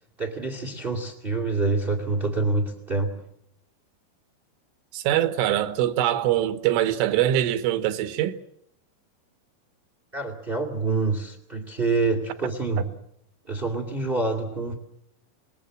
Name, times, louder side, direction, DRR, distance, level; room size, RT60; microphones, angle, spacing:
voice 1, 0.2-3.2 10.1-12.9 13.4-14.7, right 3 dB, 50° right, 0.6 m, -26 dB
voice 2, 4.9-8.4, right 12 dB, 85° right, 3.7 m, -23 dB
25.5 x 20.5 x 7.6 m
omnidirectional pair, 5.6 m